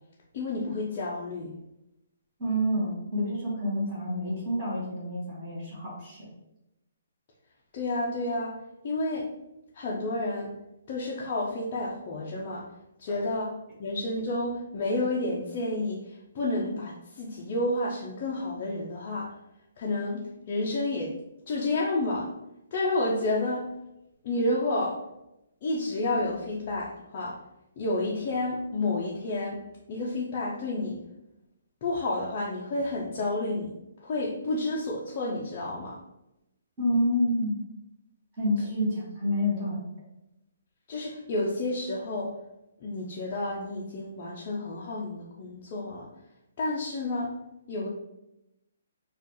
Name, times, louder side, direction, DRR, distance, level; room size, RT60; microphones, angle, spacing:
voice 1, 0.3-1.5 7.7-8.5 8.8-9.3 9.7-10.5 10.9-12.6 13.0-13.5 13.8-16.0 16.3-19.3 19.8-21.1 21.5-22.3 22.7-23.7 24.2-25.0 25.6-27.4 27.8-29.6 29.9-31.0 31.8-33.7 34.0-36.0 40.9-42.3 42.8-46.1 46.6-47.3 47.7-47.9, left 2 dB, 25° left, -5 dB, 0.4 m, -30 dB
voice 2, 2.4-6.3 13.1-13.2 36.8-37.6 38.4-39.8, equal, 15° right, -10 dB, 1.1 m, -28 dB
4.7 x 2.3 x 2.9 m, 0.89 s
hypercardioid pair, 175°, 0 cm